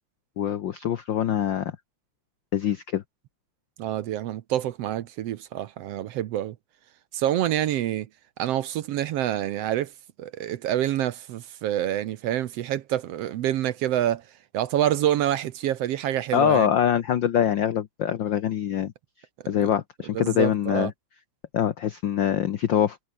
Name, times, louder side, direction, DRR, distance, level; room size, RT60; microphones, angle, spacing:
voice 1, 0.4-1.7 2.5-3.0 16.3-18.9 19.5-20.9 21.5-23.0, left 10 dB, 80° left, 1.0 m, -24 dB
voice 2, 3.8-6.5 7.1-8.1 8.4-9.9 10.2-14.2 14.5-16.7 19.5-19.7 20.1-20.9, right 12 dB, 70° right, 1.7 m, -27 dB
omnidirectional pair, 3.3 m